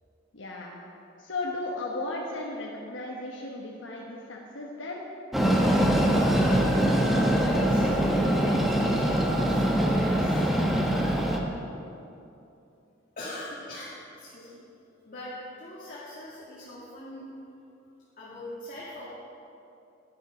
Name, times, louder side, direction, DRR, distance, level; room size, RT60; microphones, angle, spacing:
voice 1, 0.3-0.8 1.2-5.0, left 2 dB, 70° left, -2 dB, 1.1 m, -35 dB
Train, 5.3-11.4, right 1 dB, ahead, 1.0 m, -23 dB
voice 2, 7.0-10.5 13.2-13.9 14.2-14.6 15.0-17.3 18.2-19.1, left 1 dB, 45° left, -8 dB, 1.9 m, -41 dB
10.5 x 10.0 x 4.9 m, 2.8 s
head